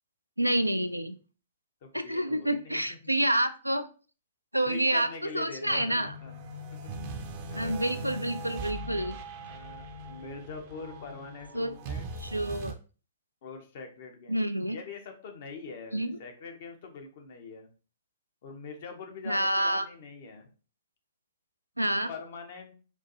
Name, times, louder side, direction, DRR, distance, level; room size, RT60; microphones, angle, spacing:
voice 1, 0.4-1.2 1.9-3.9 4.5-5.1 5.3-6.1 7.6-9.2 11.5-11.7 12.2-12.7 14.3-14.8 15.9-16.1 19.3-19.8 21.8-22.1, right 1 dB, 90° right, 10 dB, 0.3 m, -28 dB
voice 2, 1.8-3.2 4.7-6.4 6.7-6.9 7.5-7.6 9.4-12.1 13.4-17.7 18.4-20.5 22.1-22.7, left 4 dB, 50° left, 4 dB, 0.8 m, -44 dB
sound 1, 5.6-12.7, right 2 dB, 40° right, 0.5 m, -40 dB
4.3 x 2.5 x 2.7 m, 0.36 s
figure-of-eight pair, 110°, 0 cm